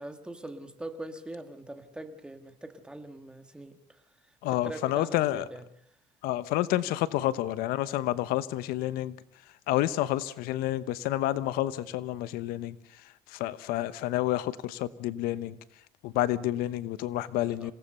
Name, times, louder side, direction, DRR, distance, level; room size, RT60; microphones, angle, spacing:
voice 1, 0.0-4.0 4.5-5.7 6.8-7.0 17.6-17.7, right 1 dB, 5° right, 7 dB, 1.7 m, -42 dB
voice 2, 4.4-5.4 6.2-9.1 9.7-12.7 13.3-15.6 16.0-17.7, left 14 dB, 85° left, 16 dB, 1.0 m, -29 dB
27.5 x 18.0 x 6.7 m, 0.67 s
cardioid pair, 160°, 15 cm